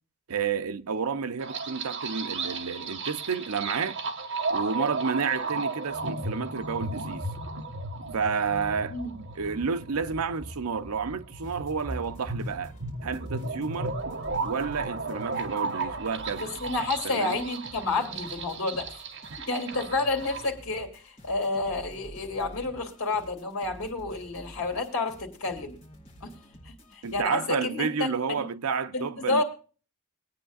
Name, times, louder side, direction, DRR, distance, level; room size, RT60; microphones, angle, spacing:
voice 1, 0.3-4.0 4.5-7.3 8.1-12.7 13.0-14.0 14.4-16.5 17.0-17.4 19.3-19.4 27.0-29.4, right 5 dB, 90° right, 0.7 m, -30 dB
sound 1, 1.4-20.4, right 3 dB, 55° right, 1.6 m, -35 dB
sound 2, 11.4-27.3, equal, 30° left, 4.0 m, -49 dB
voice 2, 16.4-18.9 19.4-25.8 26.2-26.3 26.6-28.4 28.9-29.4, left 3 dB, 65° left, 2.8 m, -30 dB
23.0 x 9.2 x 2.4 m
head